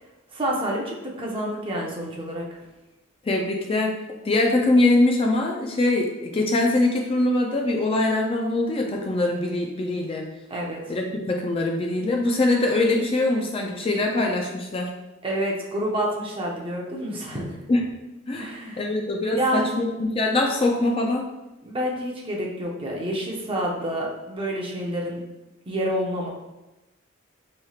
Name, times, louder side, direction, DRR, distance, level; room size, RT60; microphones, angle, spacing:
voice 1, 0.3-2.6 10.5-11.0 15.2-17.6 18.3-18.8 19.3-19.8 21.6-25.2 25.7-26.3, equal, 25° right, -2 dB, 0.7 m, -28 dB
voice 2, 3.2-4.0 4.2-10.3 10.9-14.9 17.7-17.8 18.3-21.3, left 2 dB, 30° left, 1 dB, 0.3 m, -23 dB
4.4 x 3.1 x 2.4 m, 1.0 s
head